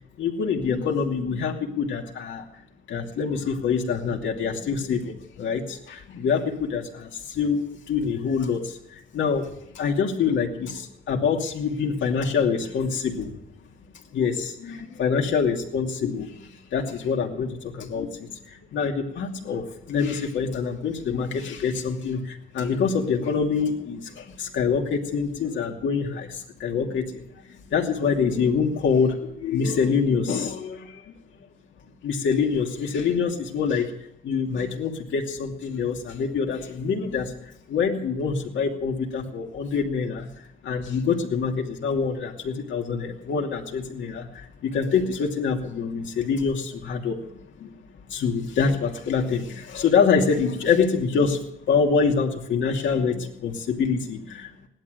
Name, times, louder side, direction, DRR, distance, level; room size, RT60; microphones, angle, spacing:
voice 1, 0.2-2.4 2.9-8.8 9.1-13.3 14.1-18.3 18.7-27.4 27.7-31.1 32.0-34.0 34.2-40.3 40.6-47.2 47.6-47.7 48.1-54.5, left 5 dB, 70° left, 1 dB, 2.7 m, -25 dB
16.5 x 12.0 x 6.6 m, 0.76 s
cardioid pair, 90°, 20 cm